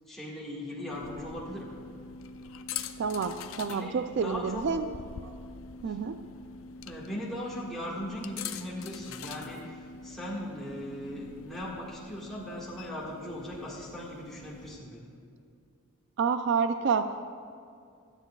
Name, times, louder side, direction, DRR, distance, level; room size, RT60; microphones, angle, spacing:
voice 1, 0.0-1.7 3.7-3.9 4.2-4.6 5.9-6.0 6.8-15.1, left 1 dB, ahead, -7 dB, 1.7 m, -39 dB
sound 1, 0.9-14.8, left 5 dB, 65° left, 0.5 m, -44 dB
voice 2, 3.0-4.9 5.2-5.3 5.8-6.2 16.2-17.3, right 5 dB, 55° right, 9 dB, 0.3 m, -29 dB
23.0 x 9.0 x 2.3 m, 2.4 s
head